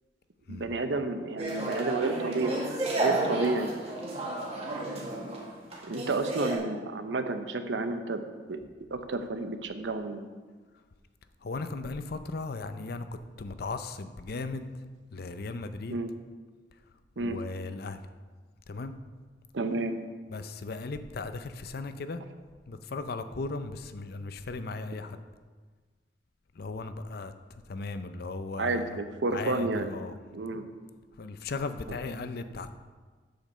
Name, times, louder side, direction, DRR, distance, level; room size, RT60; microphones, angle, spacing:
voice 1, 0.5-2.6 2.9-3.7 5.8-8.2 8.5-8.6 8.9-10.2 15.9-16.1 17.2-17.4 19.5-20.0 28.6-29.9 30.3-30.7, right 2 dB, 85° right, 8 dB, 0.8 m, -31 dB
sound 1, 1.4-6.6, right 2 dB, 35° right, 1.8 m, -32 dB
voice 2, 11.4-13.1 13.4-14.6 15.1-16.0 17.2-18.0 18.7-18.9 20.3-22.2 22.7-25.2 26.5-27.3 27.7-29.0 29.3-30.2 30.5-30.7 31.2-32.8, left 3 dB, 60° left, 10 dB, 0.6 m, -37 dB
8.9 x 5.2 x 6.6 m, 1.4 s
head